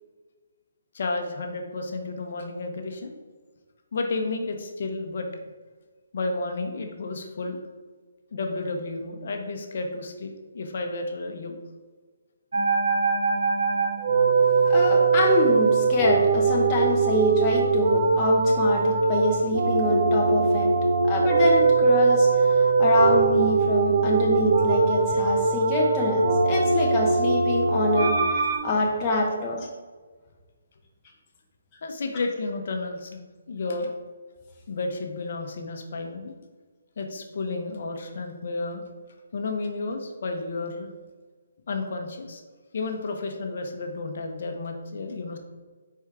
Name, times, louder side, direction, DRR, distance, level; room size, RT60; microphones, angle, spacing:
voice 1, 0.9-3.2 3.9-5.3 6.1-7.6 8.3-11.6 31.8-33.2 33.5-33.9 34.7-36.3 37.0-38.8 39.3-40.9 41.7-42.4 42.7-45.4, left 3 dB, 50° left, 4 dB, 0.9 m, -32 dB
sound 1, 12.5-28.6, right 4 dB, 75° right, 1.2 m, -21 dB
voice 2, 14.6-20.7 21.0-29.7, left 1 dB, 20° left, -2 dB, 0.7 m, -25 dB
6.1 x 4.6 x 3.6 m, 1.4 s
hypercardioid pair, 170°, 0 cm